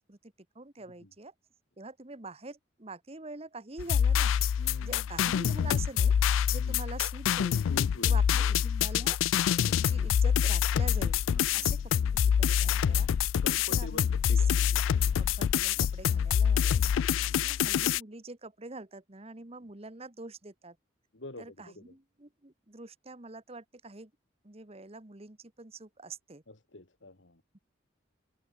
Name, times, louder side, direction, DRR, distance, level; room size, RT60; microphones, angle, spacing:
voice 1, 0.0-1.3 1.8-4.3 4.8-6.1 6.5-7.6 8.0-9.2 9.6-11.2 11.5-11.8 12.1-13.1 13.7-20.8 21.4-24.1 24.4-26.4 27.5-27.6, right 3 dB, 30° right, 1.3 m, -45 dB
sound 1, 3.8-18.0, left 8 dB, 90° left, 0.3 m, -26 dB
voice 2, 4.6-5.1 6.5-6.8 7.7-8.6 11.3-11.7 12.7-13.0 13.4-15.2 16.5-17.4 21.1-21.9 26.5-27.4, left 2 dB, 70° left, 2.2 m, -47 dB
head